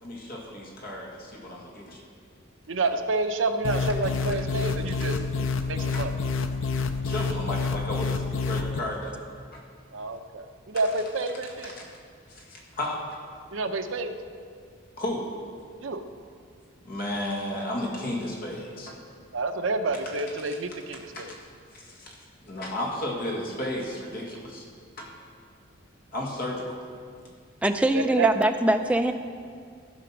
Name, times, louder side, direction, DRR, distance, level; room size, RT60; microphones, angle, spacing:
voice 1, 0.0-2.0 4.3-4.4 5.0-5.2 5.9-6.0 7.0-9.1 9.5-9.6 11.4-11.9 12.3-13.2 15.0-15.3 16.8-19.0 21.1-21.4 21.7-22.2 22.4-24.7 25.0-25.1 26.1-26.8, left 1 dB, 45° left, -2 dB, 1.8 m, -33 dB
voice 2, 2.7-5.2 5.7-6.1 9.9-11.7 13.5-14.1 15.8-16.0 19.3-21.3 27.9-28.3, right 3 dB, 70° right, 7 dB, 0.7 m, -29 dB
sound 1, 3.6-8.8, left 4 dB, 70° left, 0.5 m, -28 dB
voice 3, 27.6-29.1, right 1 dB, 5° right, 6 dB, 0.4 m, -22 dB
14.5 x 5.1 x 5.9 m, 2.2 s
head